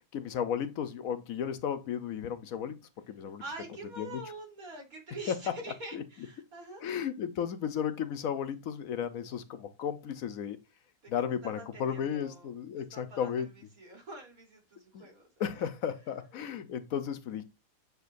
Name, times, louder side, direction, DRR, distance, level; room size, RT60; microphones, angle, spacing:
voice 1, 0.1-3.4 4.0-4.1 5.3-5.4 5.9-6.0 6.8-10.6 11.1-13.5 14.9-15.0 15.4-17.4, left 8 dB, 75° left, 1.2 m, -34 dB
voice 2, 3.2-6.8 11.0-11.1 11.4-15.7, right 2 dB, 90° right, 3.9 m, -46 dB
9.3 x 6.2 x 2.6 m
omnidirectional pair, 1.5 m